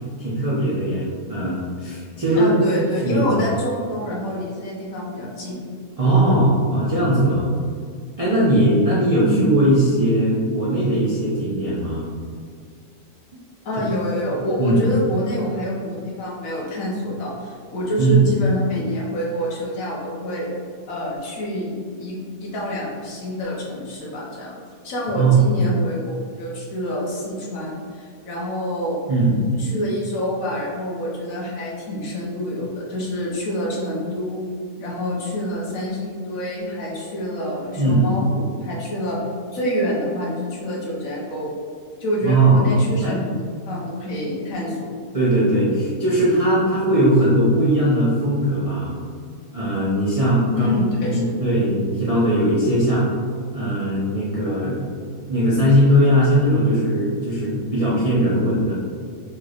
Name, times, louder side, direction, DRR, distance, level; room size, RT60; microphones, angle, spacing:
voice 1, 0.2-2.5 3.0-3.4 6.0-7.5 8.2-12.0 14.6-14.8 18.0-18.3 25.1-25.4 29.1-29.7 37.8-38.0 42.2-42.7 43.0-43.1 45.1-48.9 49.5-53.1 53.5-54.8 55.3-58.7, right 1 dB, 65° right, -8 dB, 0.3 m, -19 dB
voice 2, 2.4-5.6 9.2-9.5 13.6-20.5 20.9-24.5 24.8-29.0 29.6-34.4 34.8-39.2 39.5-41.5 42.0-43.3 43.7-44.9 50.5-51.4, left 1 dB, 65° left, -4 dB, 1.2 m, -27 dB
4.4 x 3.1 x 2.4 m, 2.1 s
omnidirectional pair, 1.6 m